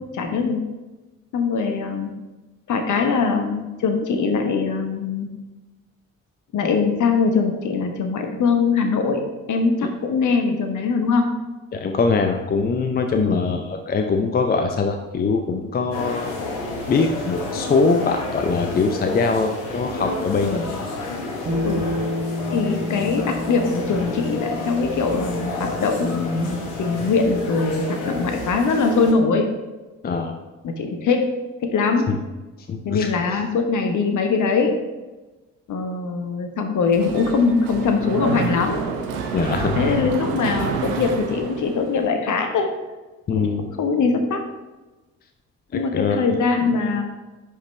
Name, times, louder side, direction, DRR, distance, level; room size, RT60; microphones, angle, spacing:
voice 1, 0.1-0.6 1.3-2.1 2.7-5.3 6.5-9.2 9.5-11.3 13.1-13.4 20.4-20.7 21.6-21.8 22.5-29.5 30.6-31.2 31.6-32.1 32.8-34.8 35.7-38.8 39.7-42.7 43.3-43.5 43.8-44.4 45.7-47.0, left 4 dB, 45° left, 5 dB, 1.2 m, -22 dB
voice 2, 11.7-16.4 16.9-20.6 30.0-30.3 32.1-32.2 32.7-33.4 39.3-40.2 43.3-43.7 45.7-46.2, left 4 dB, 25° left, 5 dB, 0.6 m, -22 dB
sound 1, 15.9-29.1, left 2 dB, 70° left, 1.3 m, -30 dB
Bass guitar, 21.5-27.7, left 1 dB, 50° right, 1.7 m, -31 dB
Mechanisms, 36.9-42.1, right 6 dB, 65° right, 0.8 m, -28 dB
10.0 x 5.2 x 3.3 m, 1.2 s
figure-of-eight pair, 45°, 41 cm